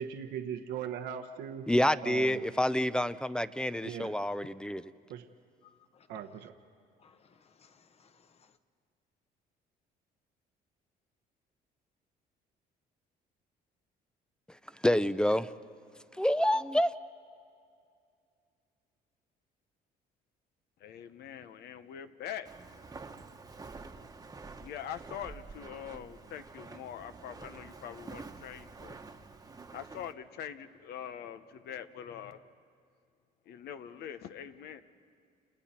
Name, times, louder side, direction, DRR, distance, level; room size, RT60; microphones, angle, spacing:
voice 1, 0.0-1.7 2.0-2.4 3.8-4.2 5.1-5.3 6.1-6.5, right 8 dB, 85° right, 1.1 m, -39 dB
voice 2, 1.7-4.8 14.8-15.5 16.2-16.9, left 1 dB, 5° left, 0.5 m, -27 dB
voice 3, 5.6-6.2 7.0-8.6, left 6 dB, 35° left, 1.1 m, -64 dB
voice 4, 20.8-22.7 24.6-28.9 29.7-32.5 33.5-34.8, left 9 dB, 75° left, 0.9 m, -43 dB
Walk footsteps, 22.4-30.1, right 4 dB, 20° right, 1.2 m, -48 dB
29.5 x 29.5 x 4.4 m
cardioid pair, 110°, 17 cm